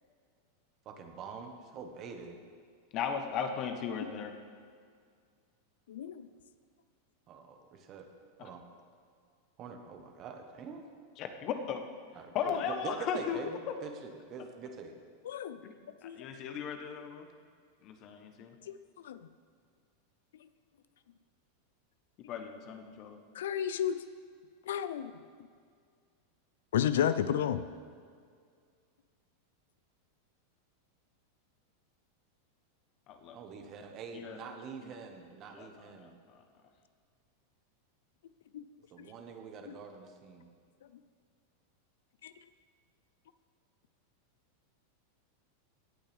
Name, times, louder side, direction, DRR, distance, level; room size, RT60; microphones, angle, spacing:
voice 1, 0.8-2.4 7.3-8.1 8.4-8.6 9.6-10.8 12.1-15.0 33.3-36.1 38.9-40.5, right 5 dB, 35° right, 5 dB, 1.2 m, -45 dB
voice 2, 2.9-4.3 8.4-8.5 11.2-11.8 12.3-13.4 13.7-13.8 15.6-15.7 16.0-17.3 17.8-18.5 22.3-23.2 33.1-33.4 34.1-34.4 34.8-34.9 35.5-36.4, left 7 dB, 40° left, 6 dB, 1.1 m, -37 dB
voice 3, 5.9-6.3 15.3-15.6 16.0-16.2 18.7-18.8 19.0-19.2 23.4-24.0 24.7-25.1 26.7-27.6 38.5-38.6 39.7-39.8 42.2-42.3, left 9 dB, 85° left, 12 dB, 0.5 m, -31 dB
17.0 x 8.8 x 3.5 m, 2.1 s
supercardioid pair, 140°, 0 cm